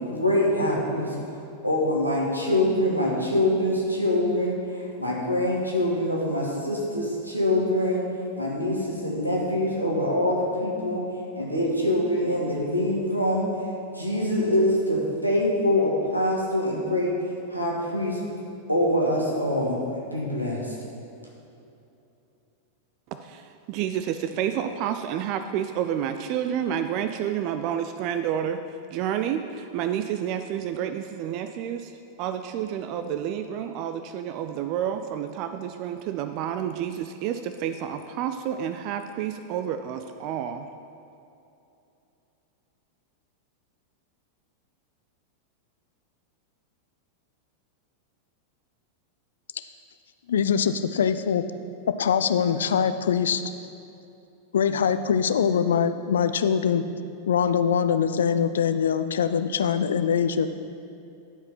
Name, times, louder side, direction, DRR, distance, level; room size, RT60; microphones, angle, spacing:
voice 1, 0.1-1.1 1.6-8.0 8.4-11.0 11.3-13.5 13.9-17.1 17.5-18.2 18.7-20.7, left 1 dB, 90° right, -3 dB, 1.7 m, -24 dB
voice 2, 23.1-28.6 28.9-40.7, right 9 dB, 40° right, 9 dB, 0.4 m, -29 dB
voice 3, 50.3-51.4 51.9-53.4 54.5-56.8 57.3-60.5, left 7 dB, 65° left, 11 dB, 0.4 m, -23 dB
11.5 x 4.9 x 5.8 m, 2.7 s
figure-of-eight pair, 90°, 0 cm